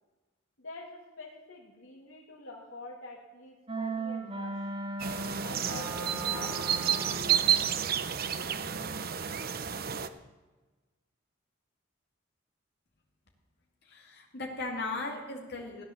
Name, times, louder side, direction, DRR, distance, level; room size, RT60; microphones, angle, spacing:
voice 1, 0.6-4.7 5.4-7.5, left 2 dB, 75° left, -3 dB, 2.4 m, -46 dB
sound 1, 3.7-7.5, right 2 dB, 30° right, 2.4 m, -37 dB
sound 2, 5.0-10.1, right 8 dB, 45° right, 0.8 m, -30 dB
voice 2, 13.9-15.8, left 2 dB, 55° left, 0 dB, 2.6 m, -37 dB
16.5 x 10.0 x 7.3 m, 1.2 s
head